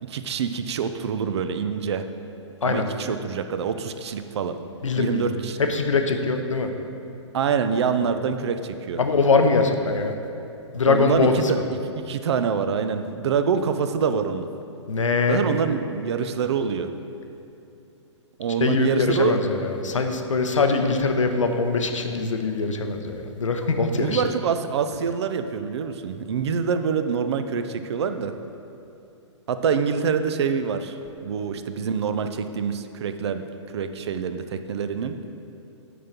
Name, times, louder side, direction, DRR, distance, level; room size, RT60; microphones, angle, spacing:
voice 1, 0.0-2.1 2.6-4.6 5.0-5.6 7.3-9.0 10.8-11.3 11.8-14.5 15.3-16.9 18.4-19.4 23.9-28.3 29.5-31.0 31.2-35.2, right 6 dB, 60° right, 9 dB, 0.5 m, -25 dB
voice 2, 4.8-5.3 5.6-6.7 8.0-8.1 9.0-10.1 10.7-11.6 14.9-15.5 18.6-24.2, left 4 dB, 85° left, 5 dB, 0.8 m, -22 dB
9.3 x 3.8 x 5.9 m, 2.7 s
hypercardioid pair, 125°, 16 cm